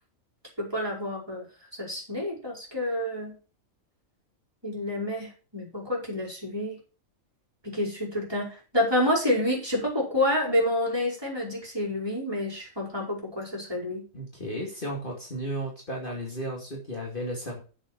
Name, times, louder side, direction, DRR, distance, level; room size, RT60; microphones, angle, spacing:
voice 1, 0.6-1.4 1.8-3.4 4.6-6.8 7.6-14.0, left 1 dB, 15° right, -3 dB, 5.2 m, -28 dB
voice 2, 14.1-17.6, equal, 40° left, -1 dB, 2.7 m, -34 dB
8.3 x 7.2 x 6.2 m, 0.34 s
omnidirectional pair, 1.5 m